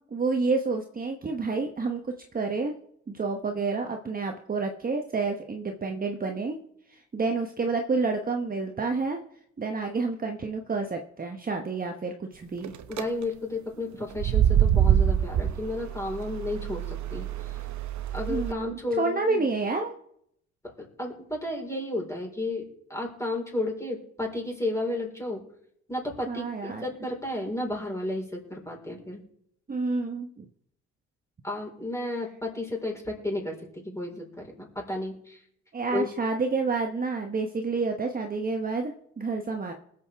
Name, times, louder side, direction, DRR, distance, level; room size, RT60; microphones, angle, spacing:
voice 1, 0.1-2.7 3.1-6.6 6.9-9.2 9.6-12.7 18.3-19.9 26.2-26.9 29.7-30.5 35.7-39.7, right 4 dB, 30° right, 3 dB, 1.1 m, -29 dB
sound 1, 12.6-13.0 14.1-18.5, right 10 dB, 70° right, 0.9 m, -25 dB
voice 2, 12.9-17.5 18.1-19.5 20.8-22.6 22.9-25.4 25.9-29.2 31.4-35.4 35.9-36.1, left 2 dB, 10° left, 0 dB, 4.5 m, -32 dB
20.5 x 7.8 x 3.6 m, 0.72 s
cardioid pair, 90°, 30 cm